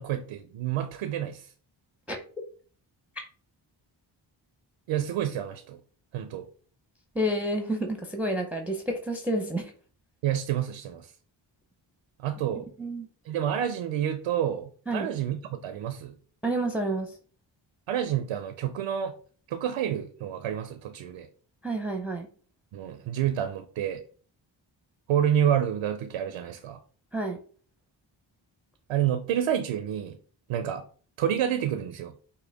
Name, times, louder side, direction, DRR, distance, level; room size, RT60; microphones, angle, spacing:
voice 1, 0.0-1.5 4.9-5.8 6.1-6.5 10.2-11.1 12.2-12.7 13.2-16.2 17.9-19.2 19.5-21.3 22.7-24.0 25.1-26.8 28.9-30.2 30.5-30.8 31.2-32.1, right 10 dB, 90° right, 8 dB, 0.5 m, -29 dB
voice 2, 7.2-9.7 12.8-13.1 14.9-15.1 16.4-17.1 21.6-22.3 27.1-27.4, right 1 dB, 5° right, 3 dB, 0.6 m, -29 dB
5.4 x 2.2 x 3.4 m, 0.43 s
cardioid pair, 55°, 49 cm